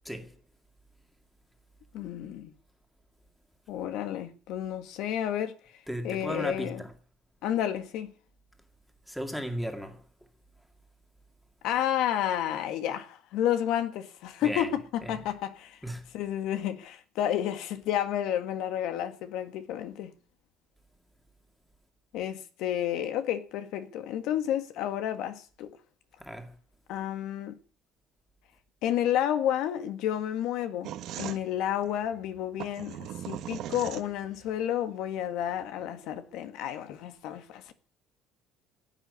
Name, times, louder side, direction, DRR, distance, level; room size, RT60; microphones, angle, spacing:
voice 1, 0.0-0.4 5.9-6.9 9.1-10.1 14.4-14.7 15.0-15.2 15.8-16.1 26.2-26.6, equal, ahead, 2.2 m, -36 dB
voice 2, 1.9-2.5 3.7-5.8 6.0-6.8 7.4-8.1 11.6-15.8 16.1-20.1 22.1-25.8 26.9-27.5 28.8-37.7, left 10 dB, 70° left, 1.8 m, -31 dB
sound 1, 30.8-34.5, right 12 dB, 55° right, 1.4 m, -39 dB
16.0 x 8.8 x 9.7 m
cardioid pair, 160°, 0 cm